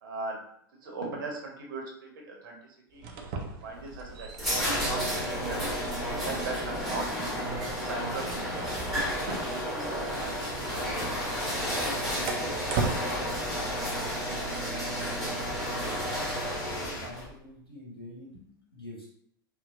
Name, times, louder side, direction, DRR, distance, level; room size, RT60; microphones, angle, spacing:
voice 1, 0.0-0.4 0.8-2.6 2.9-3.1 3.5-5.6 6.0-7.1 7.6-11.8, right 3 dB, 60° right, 0 dB, 0.8 m, -39 dB
sound 1, 2.9-13.0, right 4 dB, 40° right, 0.4 m, -39 dB
sound 2, 3.7-17.3, equal, ahead, 1.1 m, -32 dB
sound 3, 10.1-17.1, left 1 dB, 55° left, 0.9 m, -42 dB
voice 2, 16.7-19.1, left 1 dB, 80° left, -5 dB, 1.0 m, -47 dB
2.8 x 2.1 x 2.4 m, 0.69 s
figure-of-eight pair, 90°, 12 cm